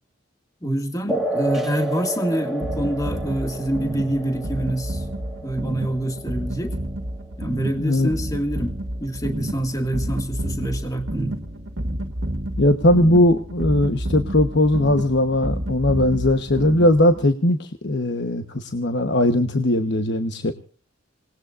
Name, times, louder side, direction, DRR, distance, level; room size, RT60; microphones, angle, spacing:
voice 1, 0.6-5.0 5.4-6.8 7.4-11.4, right 1 dB, 20° left, 4 dB, 2.0 m, -26 dB
sound 1, 1.1-8.1, right 2 dB, ahead, 1.8 m, -31 dB
sound 2, 2.6-17.3, right 1 dB, 80° right, 2.0 m, -30 dB
voice 2, 7.5-8.1 12.6-20.5, left 1 dB, 60° left, 7 dB, 1.1 m, -19 dB
27.5 x 19.5 x 2.5 m, 0.40 s
head